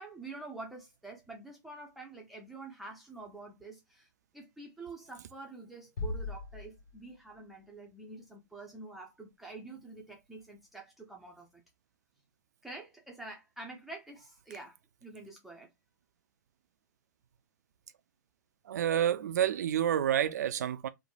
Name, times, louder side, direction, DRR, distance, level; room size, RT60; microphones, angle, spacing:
voice 1, 0.0-4.1 4.3-11.6 12.6-14.8 15.0-15.7, right 3 dB, ahead, 0.6 m, -47 dB
sound 1, 6.0-7.4, left 2 dB, 65° left, 0.7 m, -39 dB
voice 2, 18.7-20.9, right 10 dB, 60° right, 0.4 m, -29 dB
3.1 x 2.1 x 2.7 m
figure-of-eight pair, 120°, 10 cm